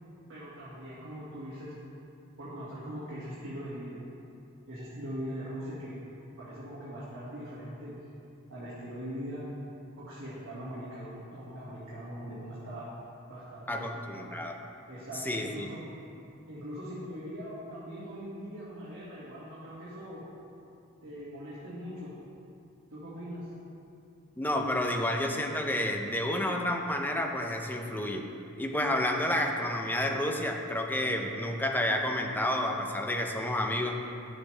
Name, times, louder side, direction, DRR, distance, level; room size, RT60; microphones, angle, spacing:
voice 1, 0.3-1.7 2.4-4.0 4.7-6.0 6.4-7.9 8.5-9.4 10.0-12.9 13.3-14.4 14.9-15.8 16.5-20.2 21.0-22.1 22.9-23.5, equal, 65° right, -9 dB, 1.9 m, -41 dB
voice 2, 13.7-14.6 15.2-15.7 24.4-28.2 28.6-34.0, left 1 dB, 10° left, 3 dB, 0.6 m, -30 dB
11.0 x 7.3 x 3.3 m, 2.6 s
head